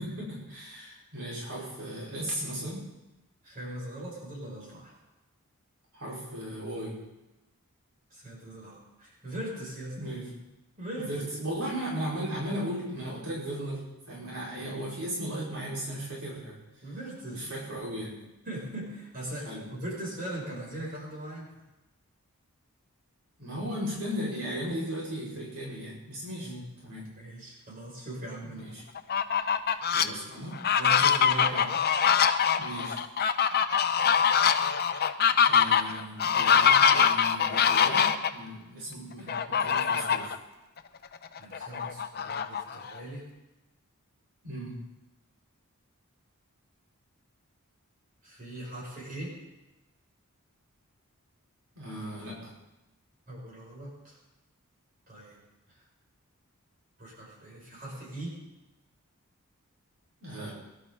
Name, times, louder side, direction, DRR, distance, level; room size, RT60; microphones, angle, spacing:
voice 1, 0.0-2.9 5.9-7.1 10.0-10.4 11.0-16.9 17.3-18.2 19.4-19.8 23.4-26.6 26.8-27.2 28.4-28.8 29.9-30.7 32.6-33.0 35.5-40.3 44.4-44.9 51.7-52.6 60.2-60.5, equal, 75° right, -6 dB, 5.4 m, -36 dB
voice 2, 3.4-5.0 8.1-10.0 10.8-11.3 16.8-17.5 18.5-21.5 26.4-26.7 27.2-28.7 30.8-31.8 41.4-43.3 48.2-49.4 53.3-54.2 55.1-55.4 57.0-58.4, right 1 dB, 40° right, -4 dB, 7.1 m, -40 dB
Fowl, 29.0-30.0 30.5-38.3 39.3-40.3 40.8-40.9 41.2-43.0, left 7 dB, 45° left, 0.8 m, -24 dB
23.0 x 12.0 x 4.1 m, 0.99 s
head